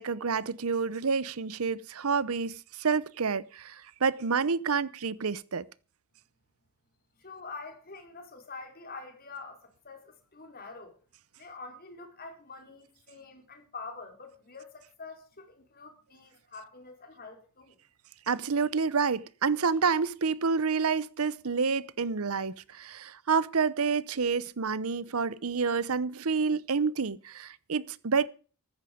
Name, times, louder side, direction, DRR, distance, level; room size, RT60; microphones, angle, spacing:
voice 1, 0.0-5.6 18.3-28.3, right 5 dB, 80° right, 0.8 m, -28 dB
voice 2, 7.2-11.0 11.4-17.8, left 4 dB, 45° left, 4.1 m, -46 dB
14.5 x 13.5 x 5.1 m
head